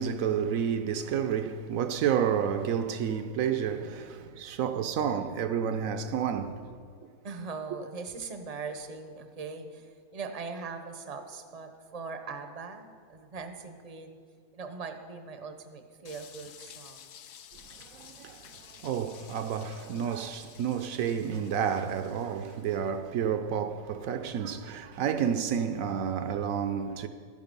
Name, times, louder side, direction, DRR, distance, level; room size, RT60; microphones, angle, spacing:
voice 1, 0.0-7.1 17.8-27.1, right 8 dB, 70° right, 0.9 m, -30 dB
voice 2, 7.2-14.2 14.5-17.1, right 4 dB, 35° right, 0.6 m, -40 dB
sound 1, 16.0-22.9, left 9 dB, 90° left, 1.2 m, -52 dB
12.5 x 10.5 x 5.3 m
omnidirectional pair, 1.6 m